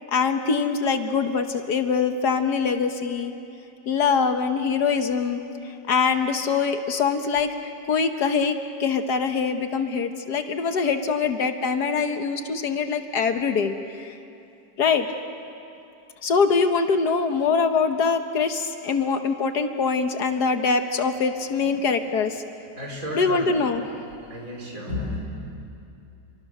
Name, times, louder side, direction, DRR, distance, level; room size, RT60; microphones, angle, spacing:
voice 1, 0.1-3.3 3.9-7.5 7.9-14.1 14.8-15.1 16.2-22.4 23.1-23.8, left 5 dB, 65° left, 7 dB, 1.7 m, -23 dB
voice 2, 22.8-23.6 24.3-25.2, left 1 dB, 50° right, -1 dB, 5.4 m, -32 dB
30.0 x 24.0 x 6.7 m, 2.6 s
omnidirectional pair, 1.9 m